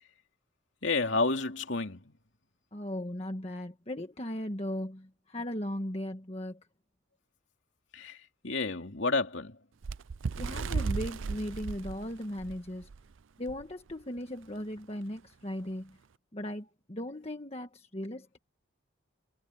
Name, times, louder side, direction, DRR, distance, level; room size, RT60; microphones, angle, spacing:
voice 1, 0.8-2.2 7.9-9.6, left 3 dB, 65° left, 2.6 m, -30 dB
voice 2, 2.7-6.6 10.4-12.9 13.4-16.0 16.3-18.4, left 1 dB, 30° left, 1.5 m, -37 dB
Bird, 9.8-13.0 13.5-13.6 13.9-14.2 15.0-15.1, right 4 dB, 75° right, 0.5 m, -35 dB
head